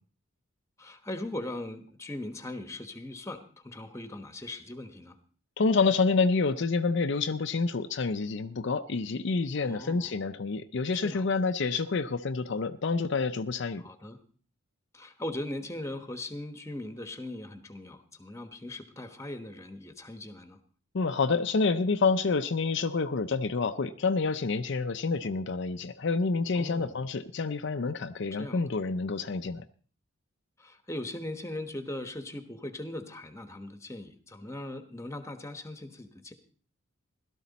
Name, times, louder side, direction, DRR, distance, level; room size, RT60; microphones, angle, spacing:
voice 1, 0.8-5.2 9.6-10.1 11.0-11.3 13.8-14.2 14.9-20.6 26.6-27.0 28.3-28.6 30.6-36.3, left 1 dB, 15° left, 9 dB, 1.2 m, -39 dB
voice 2, 5.6-13.8 20.9-29.6, left 4 dB, 60° left, 9 dB, 0.5 m, -28 dB
16.5 x 12.5 x 4.1 m, 0.42 s
head